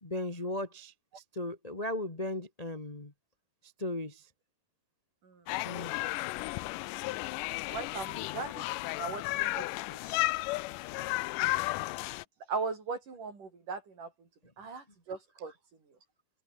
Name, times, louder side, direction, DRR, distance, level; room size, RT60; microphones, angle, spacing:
voice 1, 0.0-3.1 3.6-4.3 5.6-6.1, left 1 dB, 20° left, 1.1 m, -37 dB
sound 1, 5.5-12.2, left 20 dB, 80° left, 2.1 m, -33 dB
voice 2, 7.7-9.6 9.9-10.5 12.5-14.1 14.6-15.5, right 4 dB, 65° right, 7.0 m, -39 dB
omnidirectional pair, 3.9 m